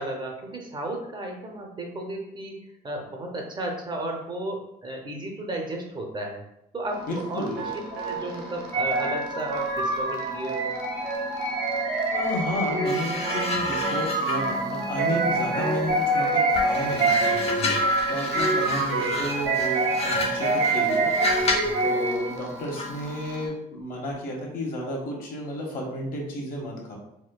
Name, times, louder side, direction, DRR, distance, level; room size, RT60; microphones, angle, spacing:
voice 1, 0.0-6.4 6.7-7.5 8.0-10.7 17.6-17.8 21.5-21.8, right 1 dB, 25° right, 1 dB, 0.6 m, -34 dB
sound 1, 6.9-23.5, right 2 dB, 90° right, 0.6 m, -40 dB
voice 2, 7.0-7.6 12.1-17.2 18.1-21.1 21.8-27.0, left 1 dB, 55° left, -1 dB, 1.0 m, -32 dB
sound 2, 8.7-22.4, right 2 dB, 60° right, 0.9 m, -26 dB
sound 3, 12.8-16.1 16.5-21.8 22.8-23.0, left 3 dB, 40° left, 0.5 m, -31 dB
4.2 x 2.2 x 2.2 m, 0.80 s
cardioid pair, 110°, 17 cm